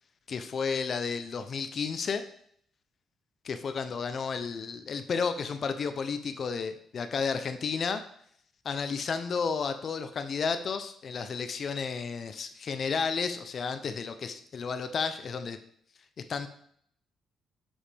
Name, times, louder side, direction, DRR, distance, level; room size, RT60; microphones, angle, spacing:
voice 1, 0.3-2.2 3.4-8.0 8.6-15.6 16.3-16.5, left 5 dB, 50° left, 9 dB, 0.6 m, -32 dB
7.2 x 7.1 x 3.5 m, 0.65 s
cardioid pair, 90°, 0 cm